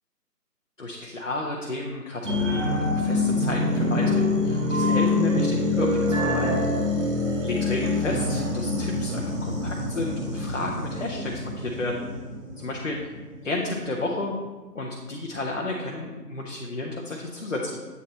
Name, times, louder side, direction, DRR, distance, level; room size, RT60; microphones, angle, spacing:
voice 1, 0.8-6.5 7.4-12.0 12.6-13.0 13.4-14.3 14.7-17.8, left 2 dB, 50° left, -1 dB, 0.7 m, -32 dB
sound 1, 2.2-13.3 13.7-13.8, left 2 dB, 45° right, 1.2 m, -25 dB
8.2 x 2.9 x 4.1 m, 1.2 s
figure-of-eight pair, 160°, 49 cm